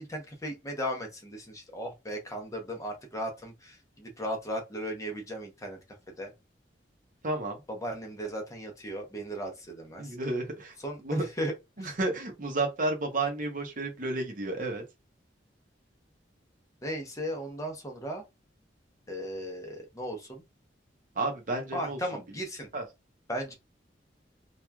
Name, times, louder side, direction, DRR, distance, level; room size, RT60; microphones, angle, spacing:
voice 1, 0.0-5.8 6.2-6.3 7.7-10.1 10.8-11.9 16.8-18.2 19.1-20.4 21.7-22.7 23.3-23.5, equal, 20° left, 0.7 m, -36 dB
voice 2, 7.2-7.6 10.0-10.7 11.0-11.3 11.8-14.8 21.2-22.0 22.7-22.8, right 2 dB, 50° right, 0.7 m, -31 dB
3.0 x 2.3 x 2.2 m
head